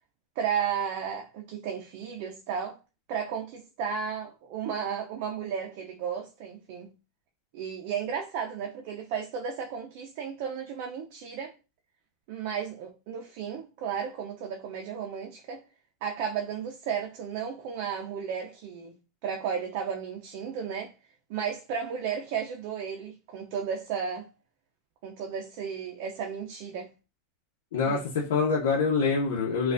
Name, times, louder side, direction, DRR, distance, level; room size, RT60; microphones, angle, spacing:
voice 1, 0.4-2.8 3.1-6.9 7.5-11.5 12.3-15.6 16.0-18.9 19.2-20.9 21.3-24.3 25.0-26.9 27.8-28.0, right 7 dB, 60° right, 0.5 m, -34 dB
voice 2, 27.7-29.7, left 5 dB, 80° left, 0.8 m, -25 dB
3.2 x 2.3 x 2.5 m
supercardioid pair, 130°, 0 cm